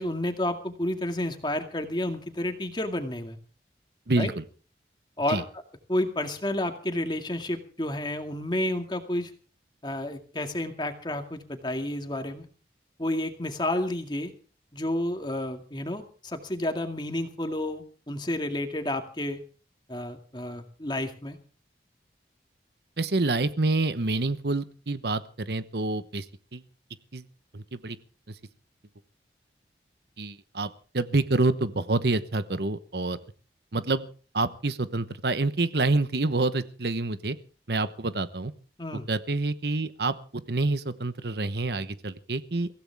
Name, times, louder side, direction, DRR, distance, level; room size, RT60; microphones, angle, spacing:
voice 1, 0.0-3.4 4.2-4.3 5.2-5.4 5.9-9.3 9.8-12.5 13.0-14.3 14.7-19.4 19.9-21.4 38.8-39.1, left 1 dB, 25° left, 6 dB, 2.1 m, -30 dB
voice 2, 4.1-4.4 5.3-5.4 23.0-26.3 26.5-26.6 27.1-27.2 27.5-28.0 30.2-33.2 33.7-34.1 34.3-37.4 37.7-38.5 39.1-42.7, right 2 dB, 65° right, 13 dB, 1.0 m, -27 dB
23.5 x 16.0 x 3.5 m, 0.38 s
head